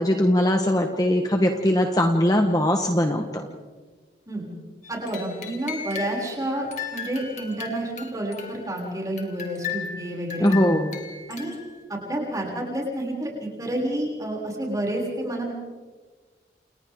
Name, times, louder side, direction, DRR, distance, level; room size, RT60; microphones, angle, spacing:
voice 1, 0.0-3.5 10.4-10.9, left 1 dB, 20° left, 3 dB, 1.4 m, -21 dB
sound 1, 4.8-6.3 6.7-8.8 9.2-11.8, left 7 dB, 40° left, 3.0 m, -36 dB
voice 2, 4.9-10.6 11.3-11.6 11.9-15.5, right 1 dB, 20° right, -2 dB, 6.9 m, -29 dB
29.5 x 29.5 x 3.8 m, 1.4 s
head